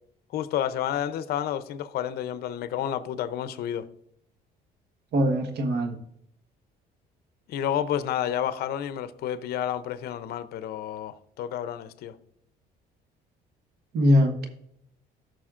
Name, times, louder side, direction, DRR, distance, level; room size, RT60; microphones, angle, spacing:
voice 1, 0.3-3.9 7.5-12.1, left 10 dB, 70° left, 0.6 m, -30 dB
voice 2, 5.1-6.0 13.9-14.5, equal, 70° right, 1.3 m, -22 dB
14.0 x 6.3 x 2.5 m
cardioid pair, 110°, 17 cm